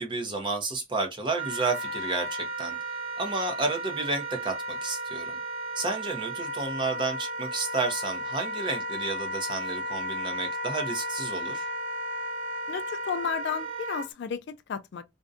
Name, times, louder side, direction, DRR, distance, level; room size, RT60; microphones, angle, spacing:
voice 1, 0.0-2.8 3.2-5.4 5.7-11.6, right 3 dB, 25° right, 0.6 m, -31 dB
Wind instrument woodwind instrument, 1.3-14.1, right 1 dB, 75° right, 0.7 m, -34 dB
voice 2, 12.7-15.0, left 6 dB, 60° left, 0.3 m, -33 dB
2.6 x 2.1 x 2.3 m
head